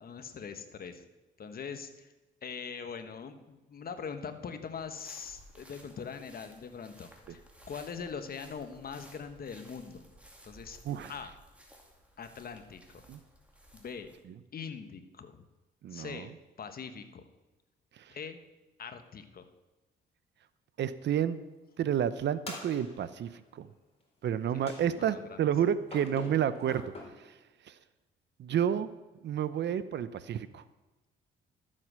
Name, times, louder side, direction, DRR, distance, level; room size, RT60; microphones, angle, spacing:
voice 1, 0.0-1.0 1.4-2.1 2.4-7.4 7.7-10.0 10.4-10.8 11.1-11.3 12.2-13.0 13.7-14.1 14.5-15.4 15.9-16.3 16.6-17.2 18.1-18.4 18.8-19.4 24.5-25.4, left 6 dB, 50° left, 9 dB, 1.3 m, -42 dB
sound 1, 4.7-14.2, right 1 dB, 5° right, 2.4 m, -57 dB
voice 2, 15.8-16.3 20.8-21.4 21.8-23.7 24.2-26.8 28.4-28.9 29.2-30.6, right 9 dB, 60° right, 14 dB, 0.7 m, -30 dB
sound 2, 22.5-23.3 24.7-25.3 25.9-27.0, left 2 dB, 30° left, 3.9 m, -44 dB
13.0 x 7.8 x 6.3 m, 1.1 s
cardioid pair, 90°, 20 cm